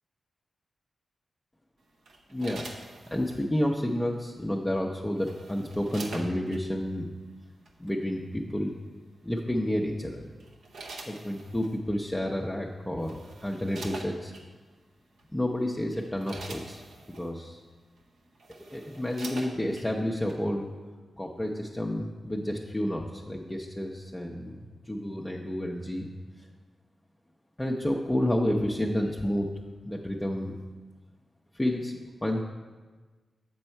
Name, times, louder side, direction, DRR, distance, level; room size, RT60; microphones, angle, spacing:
sound 1, 2.1-3.4 4.8-6.6 7.7-7.9 9.6-9.9 10.4-11.8 12.6-12.7 13.0-14.5 15.2-15.4 15.8-17.3 18.0-18.1 18.3-19.9 20.3-20.4, right 3 dB, 80° right, 0.8 m, -44 dB
voice 1, 2.3-2.6 3.1-7.1 7.8-8.7 9.2-10.3 11.1-14.3 15.3-16.8 17.2-17.6 18.7-20.7 21.2-26.1 26.4-26.5 27.6-29.5 29.8-30.6 31.5-32.4, left 1 dB, 15° left, -1 dB, 0.6 m, -30 dB
6.7 x 5.5 x 4.4 m, 1.3 s
cardioid pair, 50°, 0 cm